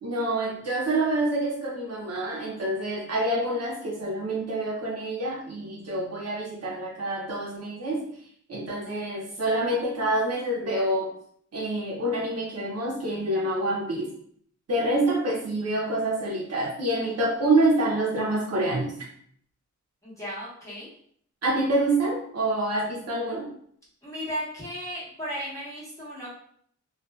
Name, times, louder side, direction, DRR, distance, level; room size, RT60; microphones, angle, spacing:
voice 1, 0.0-8.0 8.5-11.1 11.5-14.1 14.7-18.9 21.4-23.5, right 1 dB, 55° right, -3 dB, 0.6 m, -27 dB
voice 2, 20.0-20.9 24.0-26.3, equal, 10° left, -9 dB, 1.1 m, -35 dB
2.5 x 2.2 x 2.3 m, 0.63 s
wide cardioid pair, 120°, 31 cm